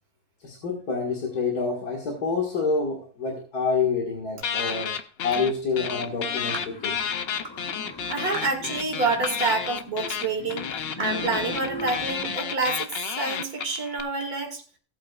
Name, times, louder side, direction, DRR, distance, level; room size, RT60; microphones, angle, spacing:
voice 1, 0.4-4.9 5.2-7.0, left 4 dB, 80° left, -2 dB, 2.3 m, -27 dB
sound 1, 4.4-5.5 5.8-14.0, left 7 dB, 55° left, 0.8 m, -31 dB
sound 2, 6.0-12.4, left 2 dB, 35° left, 0.4 m, -40 dB
sound 3, 6.5-6.8 7.4-7.6 8.3-8.5 9.2-9.5 10.1-10.2 11.0-11.2, right 2 dB, 25° right, 1.4 m, -36 dB
voice 2, 8.1-12.9 13.2-14.6, right 3 dB, 75° right, 3 dB, 2.4 m, -28 dB
17.5 x 8.2 x 2.4 m, 0.40 s
omnidirectional pair, 1.6 m